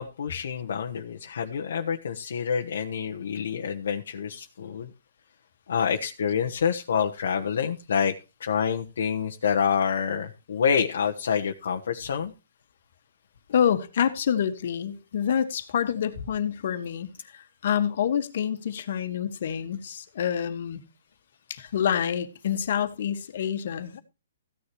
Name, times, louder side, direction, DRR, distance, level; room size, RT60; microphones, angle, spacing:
voice 1, 0.0-4.9 5.7-8.1 8.4-12.3, left 7 dB, 70° left, 1.1 m, -27 dB
voice 2, 13.5-20.8 21.5-24.0, left 8 dB, 55° left, 1.6 m, -27 dB
15.5 x 10.0 x 3.1 m
hypercardioid pair, 165°, 0 cm